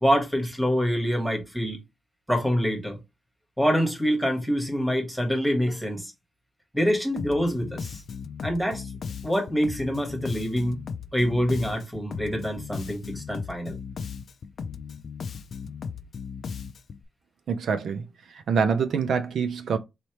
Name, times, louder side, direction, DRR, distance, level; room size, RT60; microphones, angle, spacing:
voice 1, 0.0-1.8 2.3-3.0 3.6-6.1 6.7-8.0 8.4-8.9 9.2-10.8 11.1-13.8, equal, 5° right, 1.3 m, -25 dB
Bass guitar, 7.2-17.0, left 6 dB, 55° left, 0.4 m, -37 dB
voice 2, 17.5-18.0 18.3-19.8, right 6 dB, 70° right, 0.5 m, -25 dB
4.2 x 3.2 x 3.0 m
wide cardioid pair, 140°, 0 cm